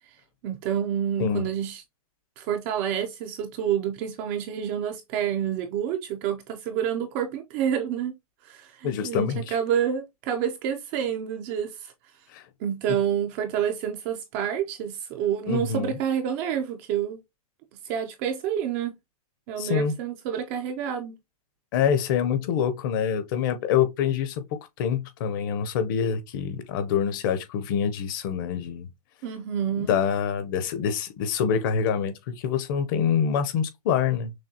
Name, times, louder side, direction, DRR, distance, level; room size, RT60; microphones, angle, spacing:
voice 1, 0.4-1.8 2.4-8.1 8.4-11.9 12.6-17.2 17.8-18.9 19.5-21.2 29.2-29.9, right 9 dB, 20° right, 0.4 m, -28 dB
voice 2, 8.8-9.6 12.3-12.4 12.9-13.0 15.5-16.0 19.6-19.9 21.7-24.4 24.8-28.9 29.8-34.3, left 7 dB, 35° left, 0.7 m, -26 dB
6.2 x 2.2 x 2.8 m
hypercardioid pair, 160°, 19 cm